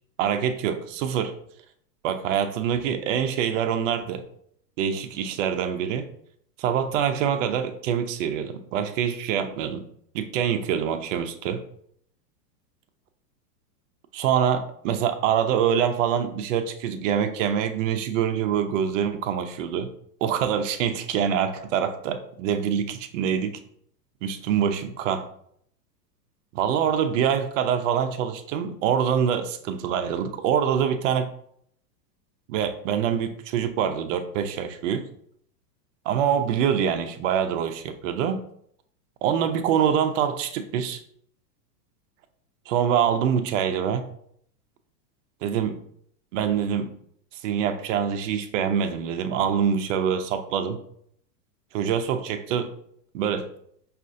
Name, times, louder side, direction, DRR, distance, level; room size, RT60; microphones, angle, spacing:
voice 1, 0.2-1.3 2.0-4.2 4.8-6.1 6.6-9.8 10.1-11.6 14.1-19.9 20.2-23.6 24.2-25.2 26.5-31.3 32.5-35.0 36.1-38.4 39.2-41.0 42.7-44.0 45.4-45.8 46.3-46.9 47.4-50.8 51.7-52.7 53.1-53.5, right 8 dB, 50° right, 8 dB, 0.5 m, -25 dB
4.9 x 2.4 x 2.5 m, 0.67 s
supercardioid pair, 145°, 49 cm